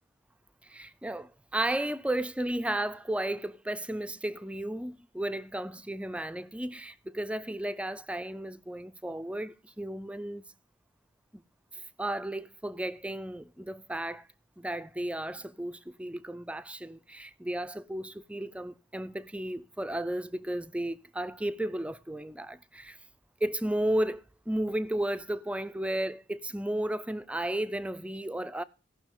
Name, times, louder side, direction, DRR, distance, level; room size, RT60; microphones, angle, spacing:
voice 1, 0.6-10.4 11.3-11.4 11.7-14.3 14.6-23.0 23.4-28.6, right 1 dB, 5° right, 0.4 m, -34 dB
17.0 x 6.1 x 3.7 m
head